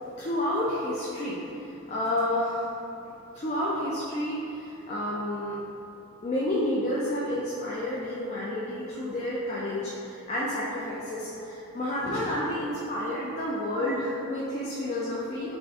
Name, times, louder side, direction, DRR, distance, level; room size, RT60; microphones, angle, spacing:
voice 1, 0.1-2.8 3.3-5.6 6.2-15.5, left 1 dB, 30° left, -7 dB, 0.3 m, -30 dB
3.6 x 2.4 x 3.4 m, 2.8 s
head